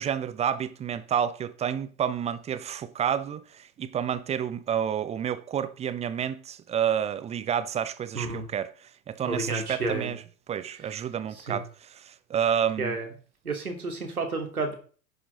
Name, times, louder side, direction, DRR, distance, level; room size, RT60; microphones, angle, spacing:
voice 1, 0.0-13.0, right 8 dB, 15° right, 0.6 m, -30 dB
voice 2, 8.1-8.4 9.3-10.1 11.5-11.6 12.8-13.0 13.4-14.7, right 3 dB, 80° right, 2.8 m, -30 dB
11.0 x 9.8 x 3.8 m
figure-of-eight pair, 95°, 43 cm